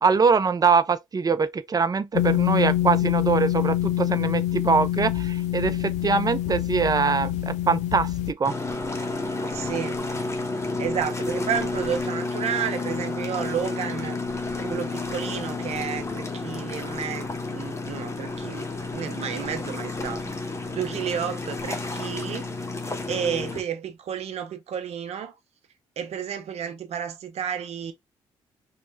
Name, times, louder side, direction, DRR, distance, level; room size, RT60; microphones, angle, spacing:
voice 1, 0.0-8.6, right 5 dB, 35° right, 0.5 m, -23 dB
sound 1, 2.1-8.3, left 13 dB, 85° left, 0.4 m, -25 dB
sound 2, 8.4-23.6, left 3 dB, 25° left, 0.9 m, -31 dB
voice 2, 9.5-10.0 10.8-14.2 14.6-18.7 18.9-20.3 20.7-22.5 23.1-25.3 26.0-27.9, right 8 dB, 65° right, 0.7 m, -31 dB
3.1 x 2.4 x 3.1 m
supercardioid pair, 55°, 12 cm